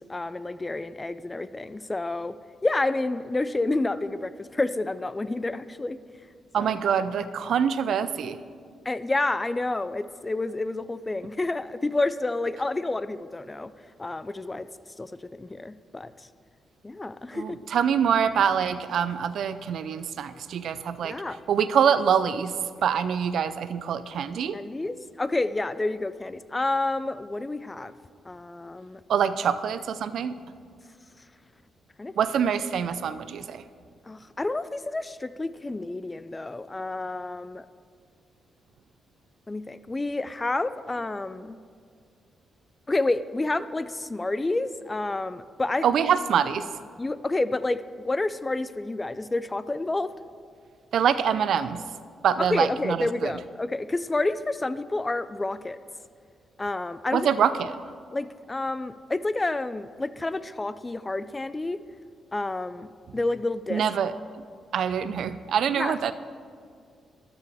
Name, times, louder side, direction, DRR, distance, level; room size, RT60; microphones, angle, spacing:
voice 1, 0.1-2.4 2.6-6.0 6.6-6.7 8.9-13.7 14.0-14.7 15.0-15.1 15.4-16.3 16.8-17.6 21.0-21.4 24.5-27.9 28.3-29.0 32.0-32.1 34.1-37.6 39.5-41.6 42.9-45.9 47.0-50.1 52.4-55.8 56.6-57.3 58.1-61.8 62.3-63.8 65.7-66.0, left 2 dB, 20° left, 15 dB, 0.3 m, -29 dB
voice 2, 6.5-8.4 17.3-21.1 21.5-22.5 22.8-24.6 29.1-30.3 32.2-33.6 45.8-46.6 50.9-51.8 52.2-53.4 57.1-57.8 63.7-64.1 64.7-66.1, right 8 dB, 70° right, 13 dB, 0.4 m, -25 dB
13.0 x 6.9 x 3.4 m, 2.2 s
cardioid pair, 85°, 0 cm